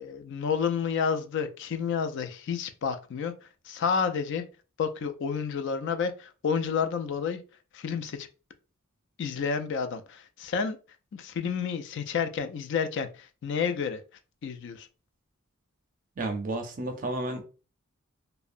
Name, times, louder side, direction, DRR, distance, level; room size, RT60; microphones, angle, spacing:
voice 1, 0.0-3.3 3.7-4.4 4.8-7.4 7.7-8.3 9.2-10.8 11.1-14.0 14.4-14.9, left 6 dB, 55° left, 0.3 m, -30 dB
voice 2, 16.2-17.4, right 2 dB, 40° right, 0.5 m, -32 dB
2.7 x 2.1 x 2.4 m
head